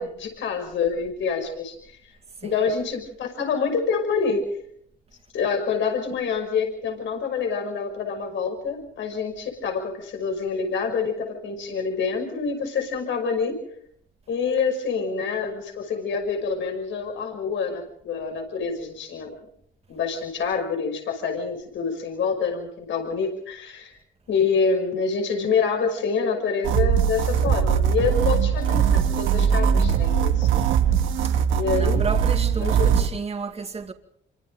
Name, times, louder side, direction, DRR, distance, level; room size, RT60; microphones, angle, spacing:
voice 1, 0.0-2.0 2.4-4.4 5.3-13.6 14.3-19.4 19.9-23.9 24.3-30.6 31.5-32.0 32.6-32.9, left 5 dB, 70° left, 5.9 m, -26 dB
sound 1, 26.6-33.1, right 8 dB, 90° right, 1.8 m, -21 dB
voice 2, 31.7-33.9, right 4 dB, 30° right, 2.3 m, -32 dB
27.5 x 24.5 x 3.9 m
cardioid pair, 90°, 20 cm